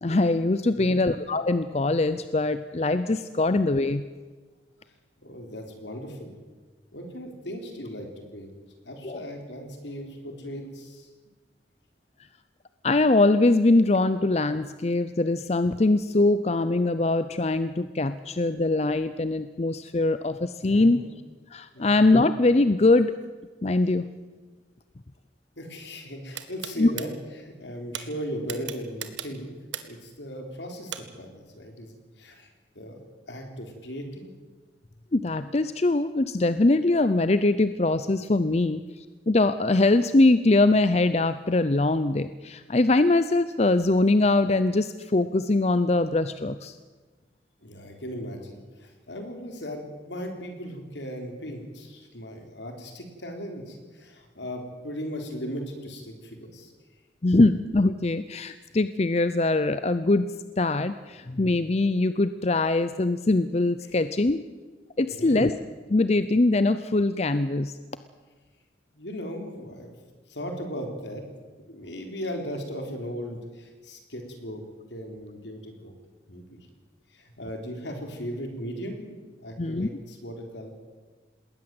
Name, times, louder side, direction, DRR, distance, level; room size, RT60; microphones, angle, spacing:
voice 1, 0.0-4.0 9.0-9.3 12.8-21.0 21.5-23.1 23.6-24.1 26.8-26.9 35.1-46.8 57.2-64.4 65.0-65.5 65.9-67.7 79.6-79.9, left 2 dB, 35° left, 12 dB, 0.6 m, -22 dB
voice 2, 5.2-6.3 6.9-8.5 8.8-11.1 20.6-20.9 21.7-21.9 25.6-27.1 27.4-29.5 29.8-32.5 32.8-33.0 33.3-34.3 47.6-56.7 65.0-65.4 68.9-70.0 70.3-71.2 71.7-74.6 74.9-75.9 76.3-76.6 77.1-79.1 79.4-80.7, equal, 75° left, 4 dB, 3.9 m, -37 dB
sound 1, 26.3-27.1 27.9-28.0 28.5-30.0 30.9-31.0, right 10 dB, 85° right, 1.7 m, -35 dB
20.5 x 18.5 x 7.8 m, 1.4 s
head